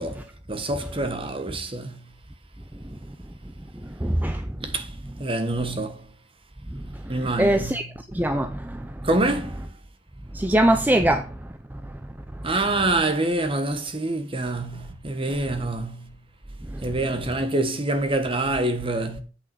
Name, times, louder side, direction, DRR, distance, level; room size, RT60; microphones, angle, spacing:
voice 1, 0.0-2.0 4.2-4.3 4.6-4.9 5.2-6.0 7.1-7.8 9.0-9.6 12.4-16.1 16.8-19.2, right 2 dB, 30° right, 1.5 m, -26 dB
voice 2, 3.8-4.6 6.7-7.8 8.1-9.1 10.3-12.0 12.3-12.5 15.5-15.7 16.7-17.0, right 1 dB, 10° right, 0.5 m, -24 dB
8.3 x 6.0 x 6.1 m
head